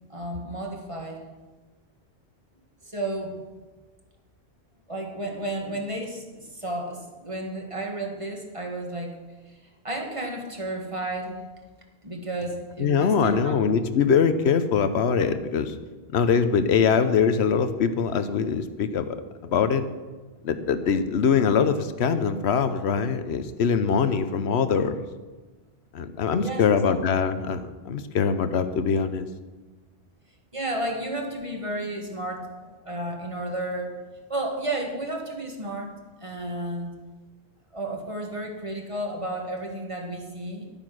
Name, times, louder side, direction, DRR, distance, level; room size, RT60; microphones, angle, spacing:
voice 1, 0.1-1.2 2.8-3.4 4.9-9.2 9.5-9.6 9.8-11.4 12.0-13.5 26.4-27.0 30.5-33.9 34.3-35.9 36.2-36.9 37.7-40.7, right 1 dB, 30° right, 1 dB, 1.9 m, -32 dB
voice 2, 12.8-15.7 16.1-19.2 19.4-19.8 20.4-25.0 25.9-29.3, left 6 dB, 80° left, 11 dB, 1.0 m, -23 dB
12.0 x 8.9 x 6.2 m, 1.3 s
omnidirectional pair, 1.1 m